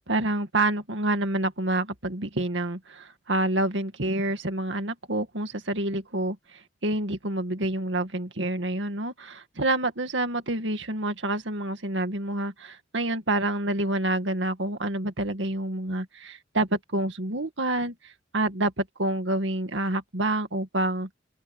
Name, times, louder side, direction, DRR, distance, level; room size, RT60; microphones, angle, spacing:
voice 1, 0.0-21.1, right 1 dB, 75° right, 2.2 m, -28 dB
open air
head